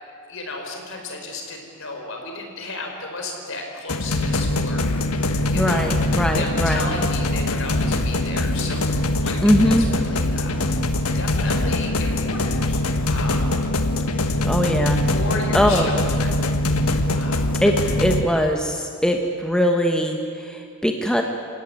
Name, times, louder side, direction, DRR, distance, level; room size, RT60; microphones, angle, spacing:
voice 1, 0.0-6.0 6.3-8.8 9.2-10.6 11.1-13.5 15.1-16.3 17.1-17.6, left 2 dB, 60° left, 2 dB, 4.8 m, -34 dB
sound 1, 3.9-18.2, left 1 dB, 80° left, 1.5 m, -22 dB
voice 2, 5.5-6.8 9.4-9.9 14.4-15.0 15.5-15.9 17.6-17.7 18.0-21.2, equal, 5° left, 3 dB, 1.2 m, -21 dB
27.5 x 17.0 x 9.8 m, 2.3 s
head